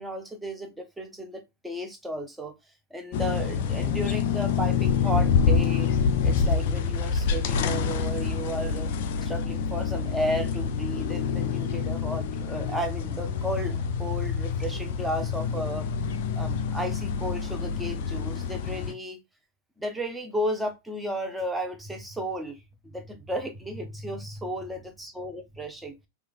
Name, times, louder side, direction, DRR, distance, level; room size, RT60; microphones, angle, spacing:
voice 1, 0.0-2.5 2.9-5.9 6.2-8.9 9.2-15.9 16.4-19.2 19.8-22.6 22.8-25.9, equal, 5° right, 0.8 m, -34 dB
sound 1, 3.1-18.9, left 6 dB, 50° left, 0.4 m, -27 dB
4.7 x 2.4 x 2.3 m
figure-of-eight pair, 90°, 0 cm